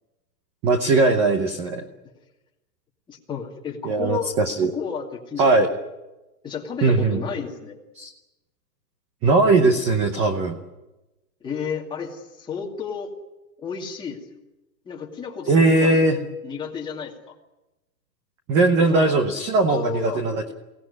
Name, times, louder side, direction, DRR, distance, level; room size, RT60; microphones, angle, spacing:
voice 1, 0.6-1.8 3.8-4.7 5.4-5.7 6.8-7.2 8.0-8.1 9.2-10.6 15.5-16.2 18.5-20.5, right 3 dB, 15° right, 6 dB, 0.9 m, -19 dB
voice 2, 3.1-4.3 4.7-5.8 6.4-7.8 11.4-13.1 13.6-14.4 14.9-17.3 18.8-19.1 19.7-20.2, left 6 dB, 10° left, -1 dB, 2.4 m, -32 dB
23.5 x 18.0 x 9.6 m, 1.0 s
hypercardioid pair, 160°, 50 cm